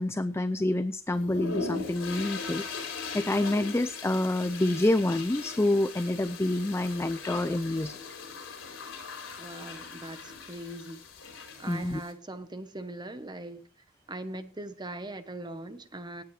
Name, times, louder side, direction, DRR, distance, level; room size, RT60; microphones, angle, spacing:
voice 1, 0.0-2.6 3.1-8.0 11.7-12.0, left 1 dB, 15° left, 0.4 m, -27 dB
sound 1, 1.1-12.1, left 4 dB, 80° left, 4.2 m, -39 dB
voice 2, 9.4-11.0 11.6-13.6 14.1-16.2, right 1 dB, 20° right, 1.0 m, -40 dB
18.0 x 9.2 x 3.3 m
head